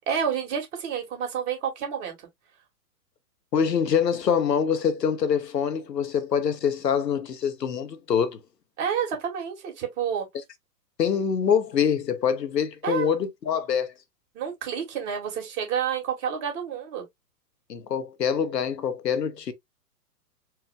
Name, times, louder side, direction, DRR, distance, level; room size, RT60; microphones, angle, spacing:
voice 1, 0.1-2.3 8.8-10.3 12.8-13.1 14.3-17.0, right 8 dB, 45° right, 2.2 m, -29 dB
voice 2, 3.5-8.4 11.0-13.9 17.7-19.5, left 7 dB, 90° left, 0.9 m, -25 dB
4.5 x 2.2 x 3.4 m
hypercardioid pair, 120°, 48 cm